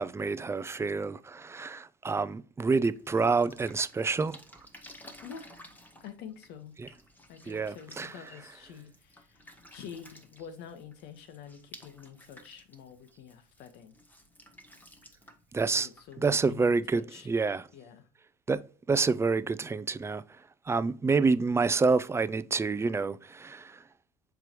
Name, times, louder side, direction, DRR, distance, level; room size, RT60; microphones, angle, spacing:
voice 1, 0.0-4.4 6.8-6.9 7.5-8.4 15.5-15.9 16.2-17.6 18.5-18.6 18.9-20.2 20.7-23.8, right 4 dB, 15° right, 0.4 m, -28 dB
Drip, 2.8-16.8, left 1 dB, 10° left, 1.2 m, -54 dB
voice 2, 6.0-6.7 7.3-14.0 15.7-17.3 17.7-18.1, left 8 dB, 70° left, 1.2 m, -47 dB
6.7 x 4.7 x 3.0 m
cardioid pair, 110°, 18 cm